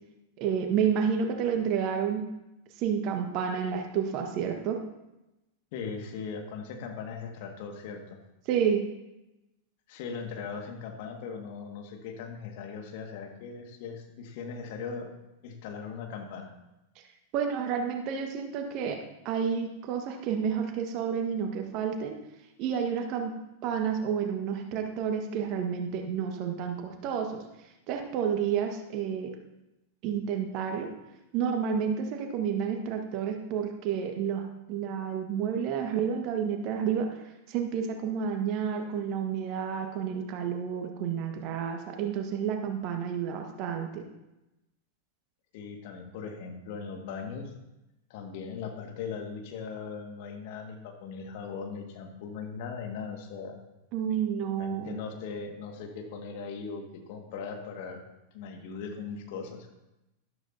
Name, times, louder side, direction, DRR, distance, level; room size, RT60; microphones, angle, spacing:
voice 1, 0.4-2.2 2.8-4.8 8.5-8.8 17.3-19.0 19.2-22.2 22.6-23.3 23.6-27.4 27.9-29.3 30.0-30.9 31.3-37.1 37.5-44.1 53.9-55.0, right 7 dB, 45° right, 4 dB, 1.5 m, -30 dB
voice 2, 5.7-8.2 9.9-15.1 15.4-16.5 45.5-47.5 48.1-53.6 54.6-58.0 58.3-59.7, left 5 dB, 50° left, 3 dB, 1.9 m, -39 dB
12.5 x 12.5 x 2.8 m, 0.95 s
figure-of-eight pair, 95°, 0 cm